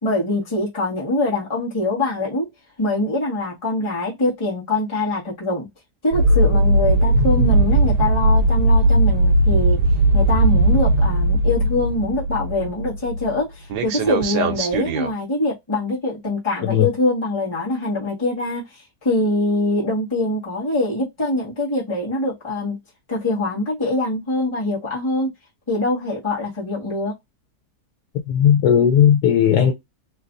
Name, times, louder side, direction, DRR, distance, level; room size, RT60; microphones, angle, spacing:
voice 1, 0.0-2.5 2.8-5.7 6.0-9.8 10.1-22.8 23.1-25.3 25.7-27.1, left 2 dB, 20° left, 1.5 m, -23 dB
sound 1, 6.1-13.4 13.7-15.1, right 1 dB, 90° right, 1.3 m, -18 dB
voice 2, 28.3-29.7, left 9 dB, 85° left, 1.3 m, -16 dB
3.3 x 3.0 x 2.5 m
omnidirectional pair, 1.7 m